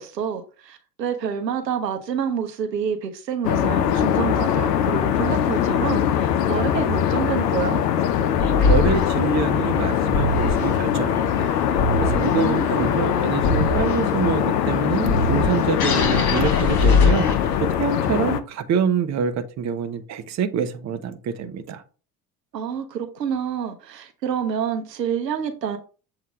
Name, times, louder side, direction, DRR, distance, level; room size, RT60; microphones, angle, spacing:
voice 1, 0.0-7.8 12.3-12.9 22.5-25.8, right 7 dB, 85° right, 1.0 m, -28 dB
sound 1, 3.4-18.4, left 9 dB, 75° left, 0.8 m, -22 dB
sound 2, 8.4-17.8, left 4 dB, 50° left, 2.2 m, -24 dB
voice 2, 8.6-11.5 12.0-17.3 17.6-21.8, right 7 dB, 35° right, 0.8 m, -26 dB
7.4 x 2.8 x 4.7 m
figure-of-eight pair, 65°, 48 cm